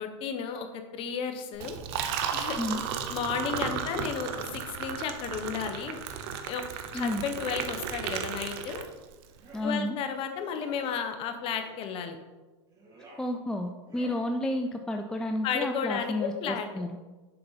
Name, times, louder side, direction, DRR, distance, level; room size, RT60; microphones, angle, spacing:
voice 1, 0.0-1.8 2.3-2.6 3.1-6.0 6.4-6.6 6.9-8.8 9.6-12.2 15.4-16.7, left 7 dB, 35° left, 7 dB, 0.9 m, -33 dB
Liquid, 1.5-9.2, right 7 dB, 55° right, 0.7 m, -34 dB
sound 1, 9.3-9.7 10.5-10.8 11.6-11.9 12.7-13.3 13.8-14.3, right 2 dB, 25° right, 2.2 m, -52 dB
voice 2, 9.5-10.0 13.2-17.0, left 1 dB, 5° left, 5 dB, 0.3 m, -31 dB
6.7 x 5.6 x 4.0 m, 1.2 s
supercardioid pair, 130°, 15 cm